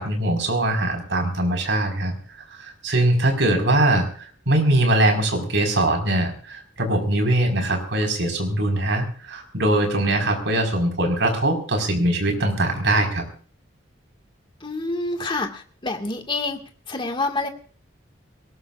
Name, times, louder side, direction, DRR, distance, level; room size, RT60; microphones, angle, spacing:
voice 1, 0.0-2.1 2.6-4.1 4.5-13.2, right 1 dB, 70° right, 4 dB, 4.9 m, -21 dB
voice 2, 14.6-16.6 16.9-17.5, left 2 dB, 25° left, 4 dB, 2.0 m, -27 dB
22.5 x 19.0 x 2.5 m, 0.41 s
head